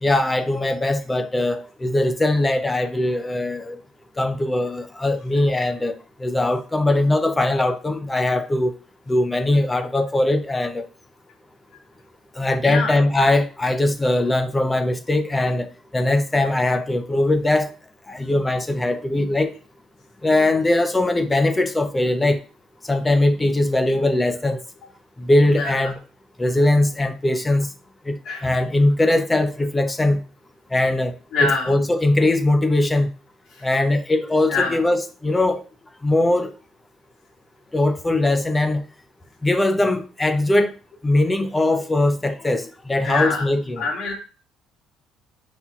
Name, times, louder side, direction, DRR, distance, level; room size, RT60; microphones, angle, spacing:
voice 1, 0.0-3.8 4.2-8.7 9.1-10.8 12.4-17.7 18.1-19.5 20.2-22.4 22.9-24.6 25.2-26.0 26.4-27.7 28.1-28.2 28.4-30.2 30.7-31.1 31.4-33.1 33.6-35.6 36.0-36.5 37.7-38.8 39.4-40.7 41.0-43.8, left 2 dB, 10° left, 0.5 m, -20 dB
voice 2, 12.6-12.9 25.5-25.9 28.3-28.5 31.3-31.7 33.6-33.7 34.5-34.8 43.0-43.5 43.8-44.1, left 3 dB, 60° left, 2.0 m, -24 dB
9.6 x 4.3 x 2.4 m
cardioid pair, 150°, 0 cm